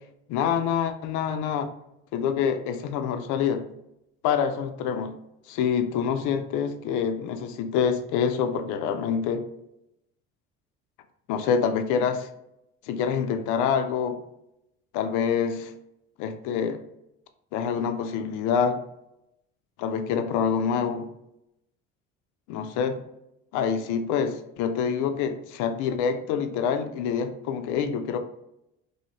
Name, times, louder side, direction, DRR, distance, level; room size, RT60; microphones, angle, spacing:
voice 1, 0.3-1.7 2.1-3.6 4.2-5.2 5.5-9.4 11.3-12.3 12.9-14.2 14.9-15.7 16.2-16.8 17.5-18.8 19.8-21.1 22.5-23.0 23.5-28.2, left 7 dB, 65° left, 7 dB, 0.5 m, -26 dB
2.7 x 2.7 x 2.9 m, 0.82 s
hypercardioid pair, 70°, 33 cm